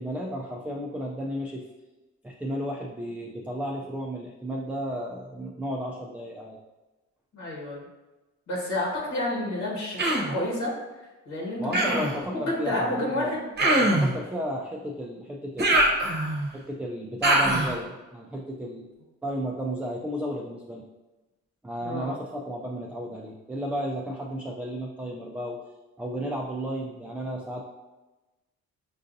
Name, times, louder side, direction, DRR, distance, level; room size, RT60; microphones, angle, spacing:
voice 1, 0.0-1.7 2.2-6.6 11.6-13.4 13.8-15.8 16.5-18.9 19.2-20.8 21.6-25.6 26.0-27.6, equal, 5° right, -1 dB, 0.3 m, -33 dB
voice 2, 7.3-7.9 8.5-10.7 11.3-13.5 21.8-22.1, left 1 dB, 75° left, -4 dB, 1.4 m, -30 dB
Human voice, 10.0-10.4 11.7-12.2 13.6-14.1 15.6-16.5 17.2-17.8, right 1 dB, 35° right, 0.8 m, -22 dB
5.4 x 2.5 x 2.6 m, 1.1 s
cardioid pair, 90°, 30 cm